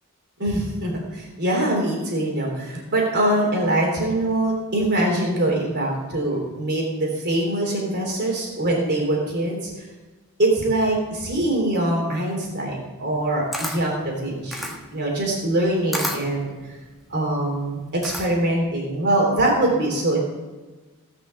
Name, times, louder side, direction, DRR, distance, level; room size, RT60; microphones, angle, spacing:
voice 1, 0.4-9.9 10.4-16.8 17.1-20.2, right 1 dB, 50° right, -1 dB, 3.4 m, -23 dB
Camera, 13.1-18.6, equal, ahead, 1.6 m, -32 dB
17.5 x 6.1 x 6.8 m, 1.2 s
head